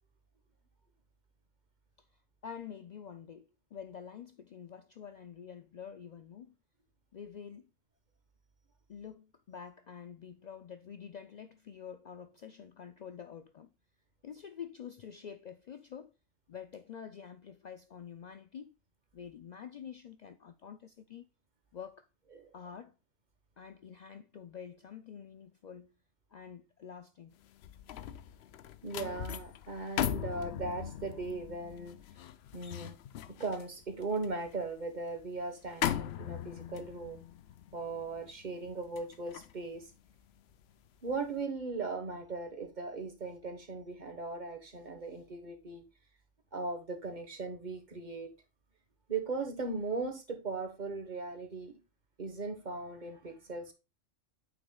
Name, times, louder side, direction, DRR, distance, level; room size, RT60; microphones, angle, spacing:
voice 1, 2.4-6.5 7.1-7.7 8.9-13.7 14.2-16.1 16.5-18.7 19.1-21.2 21.7-22.1 22.5-22.9 23.6-25.9 26.3-27.4, left 7 dB, 85° left, 0.3 m, -47 dB
sound 1, 27.4-40.7 41.1-41.4, left 11 dB, 65° left, 0.7 m, -40 dB
voice 2, 28.8-31.9 32.5-33.0 33.4-37.2 37.7-39.9 41.0-45.8 46.5-48.3 49.1-51.7 52.2-53.7, right 3 dB, 40° right, 1.3 m, -38 dB
8.4 x 6.1 x 2.3 m
omnidirectional pair, 1.3 m